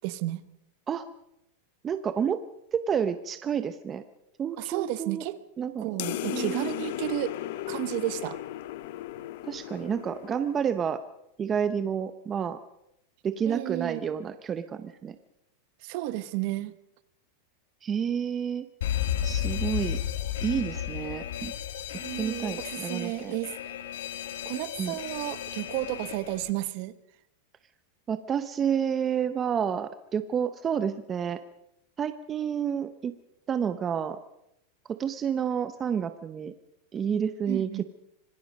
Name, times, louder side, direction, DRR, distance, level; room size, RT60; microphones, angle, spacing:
voice 1, 0.0-0.4 4.6-5.4 5.8-7.3 7.7-8.4 13.4-14.0 15.8-16.7 22.0-23.6 24.4-26.9 37.5-37.8, right 16 dB, 45° right, 15 dB, 1.0 m, -32 dB
voice 2, 1.8-2.4 2.7-4.0 4.4-5.2 5.6-5.9 6.2-6.7 9.4-11.0 11.4-12.6 13.2-15.2 17.8-18.7 19.2-20.0 20.4-21.5 22.2-23.3 24.8-25.0 28.1-31.4 32.0-33.1 33.5-34.2 34.9-36.5 36.9-37.8, right 7 dB, 20° right, 11 dB, 0.7 m, -29 dB
sound 1, 6.0-10.9, left 14 dB, 55° left, 0.8 m, -36 dB
Alarm, 18.8-26.5, left 10 dB, 80° left, 1.5 m, -33 dB
25.5 x 19.5 x 5.2 m, 0.80 s
supercardioid pair, 165°, 0 cm